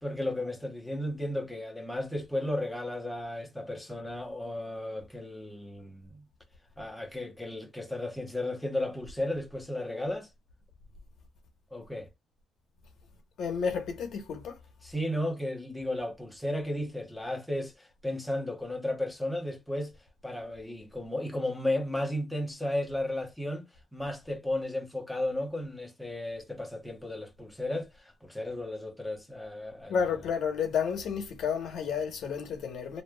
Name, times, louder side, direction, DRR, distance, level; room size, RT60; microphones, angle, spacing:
voice 1, 0.0-6.2 6.8-10.3 11.7-12.1 14.8-19.9 20.2-23.6 23.9-30.0, left 1 dB, 5° left, 0.9 m, -34 dB
voice 2, 13.4-14.6 29.9-33.0, left 7 dB, 70° left, 0.9 m, -31 dB
3.2 x 2.3 x 2.2 m
cardioid pair, 90°, 0 cm